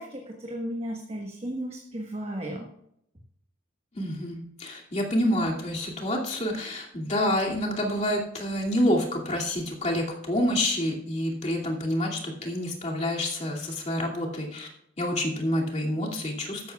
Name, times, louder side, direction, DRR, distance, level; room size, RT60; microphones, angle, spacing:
voice 1, 0.0-2.7, equal, 30° right, 0 dB, 1.3 m, -34 dB
voice 2, 3.9-14.7 15.0-16.7, left 1 dB, 35° left, -2 dB, 2.5 m, -28 dB
14.0 x 11.5 x 2.4 m, 0.75 s
head